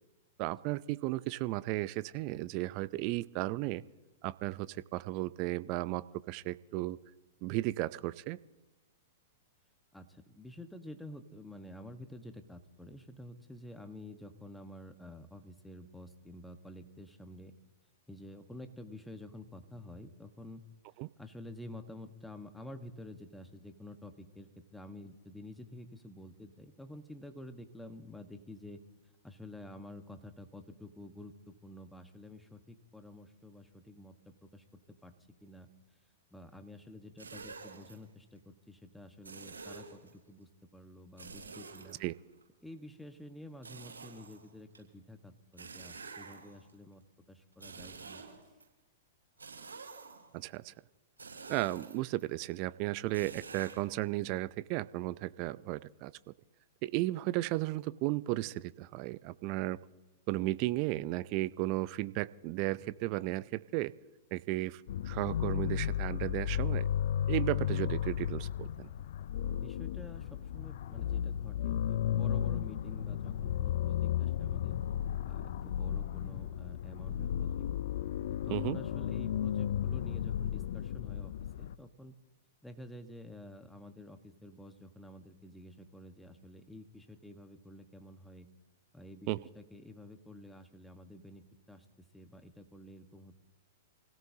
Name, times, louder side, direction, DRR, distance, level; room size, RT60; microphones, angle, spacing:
voice 1, 0.4-3.8 4.2-7.0 7.4-8.4 21.0-21.1 42.0-42.1 50.3-50.7 51.5-56.1 56.8-59.8 60.3-63.9 64.3-66.9 67.3-68.9 78.5-78.8 89.3-89.4, right 18 dB, 45° right, 18 dB, 0.5 m, -34 dB
voice 2, 9.9-17.5 18.1-20.6 21.2-28.8 29.2-35.1 35.4-35.7 36.3-42.0 42.6-47.0 47.3-48.2 68.8-69.0 69.4-74.8 75.3-77.6 78.3-82.2 82.6-88.5 88.9-93.3, left 1 dB, 5° left, 7 dB, 1.4 m, -50 dB
sound 1, 37.2-37.9 39.2-40.1 41.2-42.4 43.6-44.8 45.6-46.7 47.5-48.6 49.4-50.4 51.2-52.2 53.1-53.8, right 4 dB, 85° right, 6.6 m, -48 dB
sound 2, 64.9-81.7, left 10 dB, 60° left, 0.4 m, -34 dB
28.5 x 17.0 x 2.8 m, 1.1 s
figure-of-eight pair, 105°, 0 cm